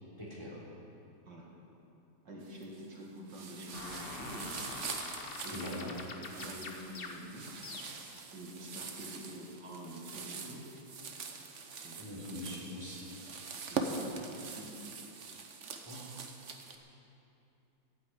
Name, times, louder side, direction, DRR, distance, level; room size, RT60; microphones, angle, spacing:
voice 1, 0.2-0.6 5.5-5.9 12.0-13.0 15.8-16.1, left 1 dB, 15° left, -6 dB, 3.2 m, -42 dB
voice 2, 2.2-4.7 5.4-7.5 8.3-10.7 11.8-12.3 13.7-14.7, right 1 dB, 65° right, -3 dB, 2.6 m, -47 dB
sound 1, 2.4-2.9 3.3-16.8, right 4 dB, 45° right, 1.1 m, -43 dB
sound 2, 3.7-8.2, left 4 dB, 45° left, 0.8 m, -45 dB
12.5 x 9.3 x 8.5 m, 2.8 s
omnidirectional pair, 2.0 m